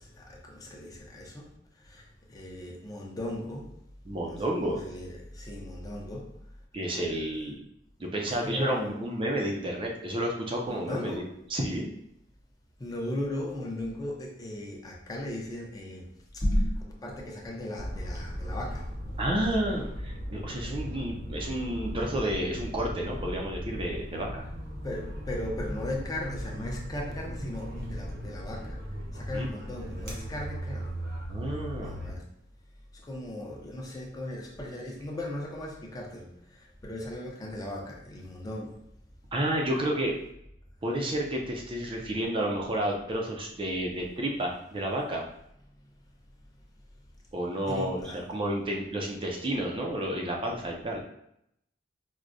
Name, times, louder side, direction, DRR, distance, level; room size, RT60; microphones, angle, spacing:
voice 1, 0.0-3.8 4.2-6.4 8.2-8.9 10.7-11.3 12.8-18.9 24.8-30.9 31.8-32.2 32.9-38.8 47.7-48.2, left 1 dB, 20° left, -2 dB, 0.6 m, -36 dB
voice 2, 4.1-4.8 6.7-7.6 8.0-11.9 19.2-24.5 29.3-29.5 31.3-31.9 39.3-40.1 40.8-45.2 47.3-51.0, right 1 dB, 30° right, 0 dB, 0.4 m, -31 dB
sound 1, 17.7-32.1, equal, 50° right, 0.8 m, -37 dB
4.6 x 2.1 x 2.5 m, 0.75 s
head